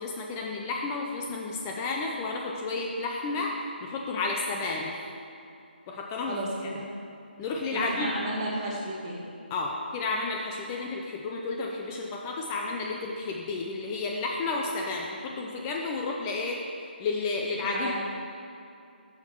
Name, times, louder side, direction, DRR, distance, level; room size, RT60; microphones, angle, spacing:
voice 1, 0.0-3.5 3.8-5.0 5.9-6.7 7.4-8.1 9.5-16.6 17.0-17.9, left 3 dB, 15° left, -1 dB, 0.4 m, -31 dB
voice 2, 6.3-6.9 7.7-9.3 17.7-17.9, right 1 dB, 25° right, -4 dB, 1.0 m, -33 dB
8.6 x 5.8 x 4.5 m, 2.5 s
figure-of-eight pair, 160°, 6 cm